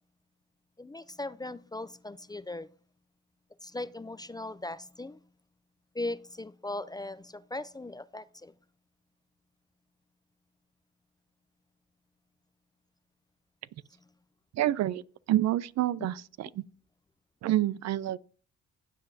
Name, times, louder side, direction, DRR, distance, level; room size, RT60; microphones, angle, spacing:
voice 1, 0.8-2.7 3.6-5.2 5.9-8.5, left 2 dB, 15° left, 0.4 m, -38 dB
voice 2, 14.5-15.0 15.3-16.6 17.4-18.2, right 14 dB, 60° right, 0.5 m, -28 dB
15.5 x 7.6 x 2.7 m
cardioid pair, 90°, 30 cm